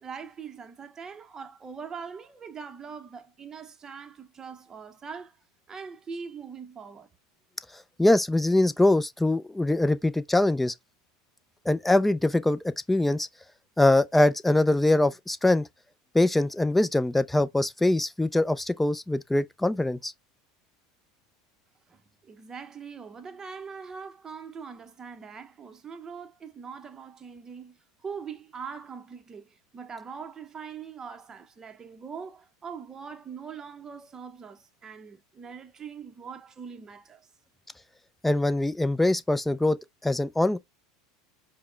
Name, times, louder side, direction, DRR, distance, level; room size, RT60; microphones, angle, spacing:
voice 1, 0.0-5.4 5.7-7.1 21.9-27.8 28.0-37.3, right 6 dB, 25° right, 0.7 m, -42 dB
voice 2, 8.0-10.7 11.7-12.6 12.9-13.3 13.8-15.7 16.1-20.1 38.2-39.8 40.0-40.6, left 2 dB, 5° left, 0.4 m, -23 dB
4.9 x 2.1 x 3.1 m
hypercardioid pair, 100°, 2 cm